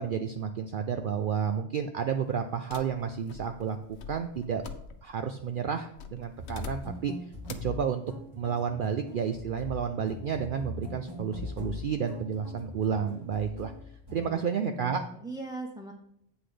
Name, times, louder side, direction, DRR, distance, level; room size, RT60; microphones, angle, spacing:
voice 1, 0.0-3.8 4.1-4.6 5.0-7.1 7.5-8.0 8.4-13.7 14.1-15.0, right 7 dB, 60° right, 7 dB, 0.6 m, -31 dB
sound 1, 2.7-5.3 6.0-7.1 7.5-7.8, left 7 dB, 65° left, 1.0 m, -44 dB
sound 2, 6.4-14.2, left 2 dB, 20° right, 1.3 m, -42 dB
voice 2, 14.2-15.9, right 2 dB, 5° right, 1 dB, 0.5 m, -40 dB
8.2 x 5.9 x 5.0 m, 0.74 s
omnidirectional pair, 1.2 m